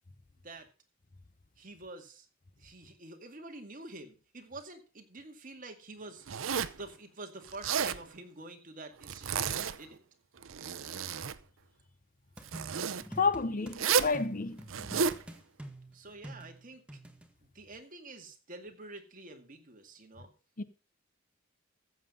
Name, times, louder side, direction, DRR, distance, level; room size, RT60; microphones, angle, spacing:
voice 1, 1.6-2.3 2.6-6.3 6.7-10.0 15.9-16.8 17.4-20.3, right 2 dB, 40° right, 2.2 m, -47 dB
Zipper (clothing), 6.3-6.8 7.5-8.0 9.0-9.8 10.4-11.4 12.5-13.0 13.7-14.2 14.7-15.2, right 6 dB, 80° right, 0.7 m, -31 dB
sound 1, 12.4-13.8 14.1-17.3, right 1 dB, 5° right, 1.6 m, -47 dB
voice 2, 13.2-14.6 20.6-20.7, left 4 dB, 40° left, 0.8 m, -30 dB
14.5 x 7.6 x 5.3 m
head